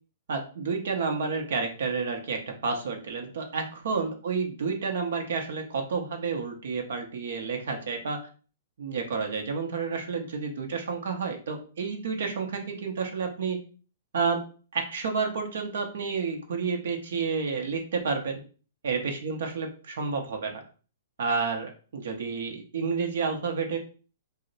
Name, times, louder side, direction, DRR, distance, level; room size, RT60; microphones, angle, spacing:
voice 1, 0.3-8.3 8.8-13.6 14.1-14.4 14.7-18.4 18.8-20.6 21.2-23.8, right 5 dB, 75° right, 3 dB, 0.7 m, -30 dB
2.7 x 2.1 x 3.9 m, 0.37 s
hypercardioid pair, 145°, 0 cm